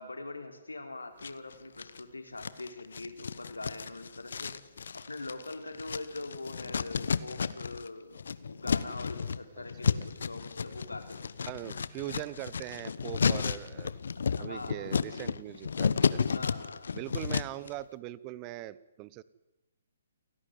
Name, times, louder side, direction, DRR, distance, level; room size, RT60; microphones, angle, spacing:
voice 1, 0.0-4.5 5.1-8.1 8.4-11.2 14.4-14.9 16.3-17.0, left 2 dB, 75° left, 7 dB, 3.5 m, -42 dB
sound 1, 1.2-2.0 2.4-7.9 8.1-17.7, left 6 dB, 60° left, 0.9 m, -32 dB
voice 2, 11.5-13.9 14.4-16.2 16.9-19.2, right 16 dB, 25° right, 19 dB, 0.8 m, -41 dB
29.0 x 11.0 x 9.3 m, 1.0 s
figure-of-eight pair, 130°, 0 cm